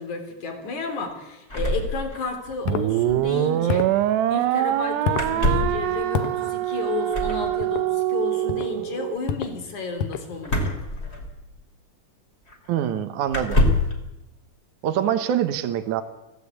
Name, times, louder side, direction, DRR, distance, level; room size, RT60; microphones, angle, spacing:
voice 1, 0.0-3.9 4.3-10.7, left 4 dB, 45° left, 6 dB, 4.4 m, -32 dB
sound 1, 1.5-2.6 2.8-2.9 3.1-3.3 5.1-5.8 7.1-7.5 10.4-11.6 12.5-12.6 13.3-14.0, left 1 dB, 15° left, 2.9 m, -24 dB
sound 2, 2.7-2.9 3.7-4.0 5.1-5.3 6.1-6.4 7.6-7.9 8.5-8.7 9.3-9.6 10.0-10.3, left 7 dB, 65° left, 2.4 m, -28 dB
sound 3, 2.7-9.2, right 13 dB, 85° right, 3.1 m, -24 dB
voice 2, 12.7-13.6 14.8-16.0, right 10 dB, 65° right, 8 dB, 2.0 m, -24 dB
24.0 x 16.5 x 8.4 m, 0.98 s
omnidirectional pair, 4.8 m